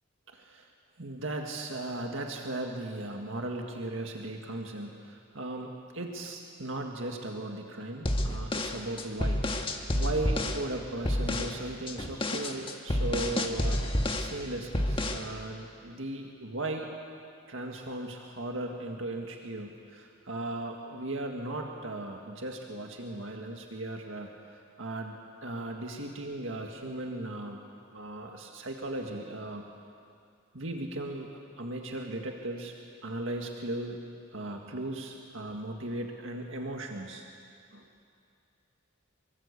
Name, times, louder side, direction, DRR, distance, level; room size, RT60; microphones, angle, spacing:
voice 1, 0.3-0.7 1.0-9.4 9.9-16.9 17.5-27.6 27.9-29.6 30.5-32.7 33.0-34.0 34.3-37.3 37.7-37.8, right 1 dB, 70° right, 2 dB, 1.9 m, -37 dB
sound 1, 8.0-10.6 11.0-11.5 11.9-14.3 14.7-15.3, left 1 dB, 25° left, 1.7 m, -29 dB
25.0 x 23.0 x 8.4 m, 2.4 s
head